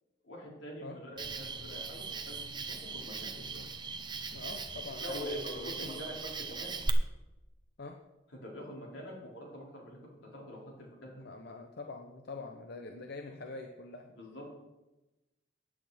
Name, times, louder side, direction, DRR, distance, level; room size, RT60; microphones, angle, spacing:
voice 1, 0.2-3.3 5.0-6.2 6.5-6.7 8.4-10.0 10.3-11.1 13.2-13.4 14.1-14.4, equal, 85° left, -3 dB, 4.9 m, -44 dB
Cricket, 1.2-6.9, right 4 dB, 25° right, 0.9 m, -40 dB
voice 2, 3.2-3.7 4.3-6.0 7.8-8.0 11.1-14.1, left 3 dB, 60° left, 4 dB, 1.0 m, -45 dB
15.0 x 9.9 x 4.4 m, 1.0 s
head